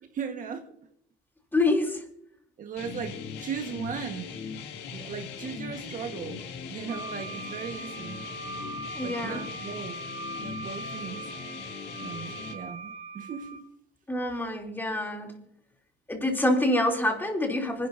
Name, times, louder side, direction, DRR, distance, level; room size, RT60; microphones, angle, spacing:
voice 1, 0.0-0.7 2.6-4.3 4.9-6.4 6.7-8.2 9.0-10.0 10.4-11.2 12.0-13.7 14.3-14.5, right 6 dB, 50° right, 1.6 m, -37 dB
voice 2, 1.5-2.0 8.9-9.4 14.1-15.3 16.1-17.9, left 1 dB, 10° left, 3.3 m, -26 dB
sound 1, 2.8-12.5, left 7 dB, 80° left, 2.2 m, -40 dB
Wind instrument woodwind instrument, 6.9-13.6, right 3 dB, 85° right, 4.7 m, -40 dB
25.0 x 11.0 x 2.8 m
cardioid pair, 110°, 17 cm